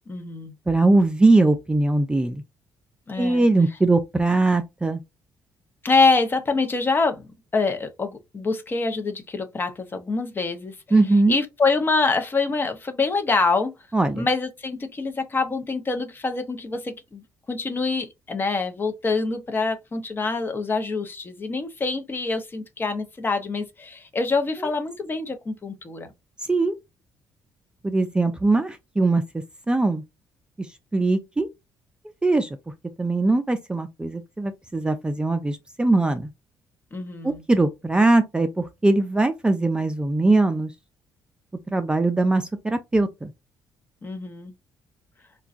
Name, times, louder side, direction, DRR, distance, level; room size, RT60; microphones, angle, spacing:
voice 1, 0.1-0.5 3.1-3.4 5.8-7.2 7.5-10.7 11.3-13.7 14.1-17.2 17.5-26.1 36.9-37.4 44.0-44.5, left 3 dB, 30° left, 0.7 m, -25 dB
voice 2, 0.7-2.4 3.2-5.0 10.9-11.4 13.9-14.3 24.6-24.7 26.5-26.8 27.8-29.2 29.7-30.0 30.6-31.5 32.2-32.5 33.0-36.3 37.2-40.7 41.7-43.3, right 2 dB, 15° right, 0.4 m, -21 dB
3.7 x 2.2 x 2.4 m
cardioid pair, 90°, 7 cm